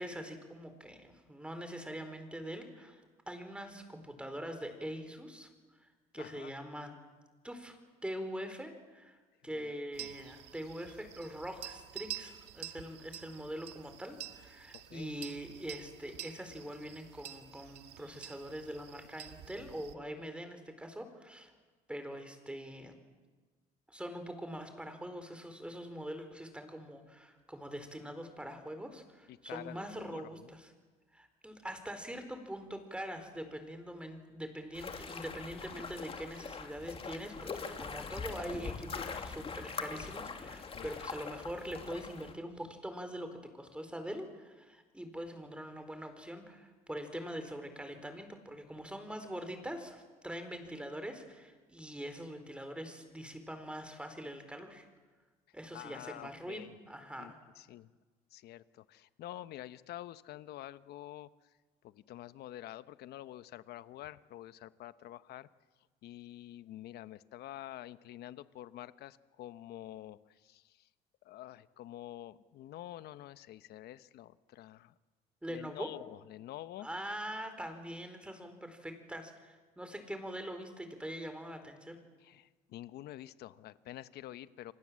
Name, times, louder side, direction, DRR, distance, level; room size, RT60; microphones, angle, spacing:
voice 1, 0.0-5.9 6.1-6.9 7.4-21.5 21.9-23.0 23.9-30.7 31.1-54.8 55.5-57.4 75.4-75.9 76.8-82.0, equal, 5° right, 7 dB, 4.3 m, -43 dB
voice 2, 6.1-6.5 9.4-10.2 14.7-15.1 29.3-30.5 40.6-40.9 55.7-56.7 57.2-57.9 58.3-61.5 61.8-65.5 66.0-70.9 71.2-74.9 75.5-76.9 82.2-84.7, left 13 dB, 75° left, 14 dB, 1.0 m, -48 dB
sound 1, 9.9-19.9, right 12 dB, 80° right, 1.7 m, -48 dB
sound 2, 34.7-42.3, left 5 dB, 35° left, 2.6 m, -42 dB
28.5 x 25.0 x 7.6 m, 1.3 s
cardioid pair, 110°, 17 cm